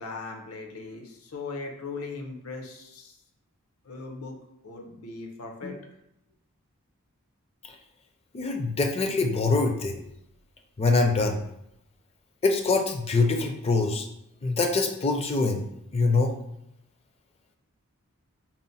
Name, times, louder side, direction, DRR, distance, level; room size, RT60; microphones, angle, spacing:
voice 1, 0.0-3.2 3.8-4.4 4.6-5.8, left 3 dB, 75° left, 1 dB, 0.8 m, -38 dB
voice 2, 8.3-10.0 10.8-11.4 12.4-14.1 14.4-15.7 15.9-16.3, left 3 dB, 25° left, 4 dB, 0.4 m, -24 dB
4.1 x 2.1 x 4.0 m, 0.79 s
head